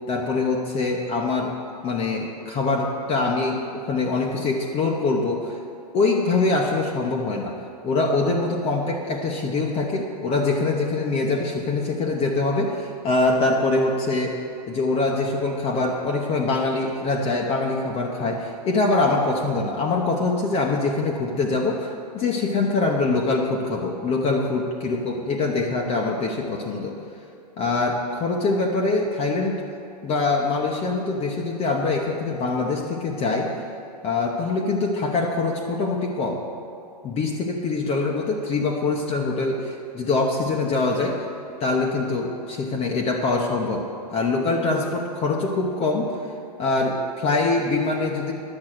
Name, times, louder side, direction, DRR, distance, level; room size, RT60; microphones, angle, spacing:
voice 1, 0.1-1.6 1.8-5.6 5.9-7.5 7.8-14.4 14.7-26.9 27.6-29.6 30.0-33.6 34.0-36.4 37.0-41.2 41.6-43.9 44.1-46.1 46.6-48.3, left 3 dB, 30° left, 0 dB, 1.0 m, -24 dB
11.0 x 7.3 x 6.4 m, 2.6 s
hypercardioid pair, 120°, 21 cm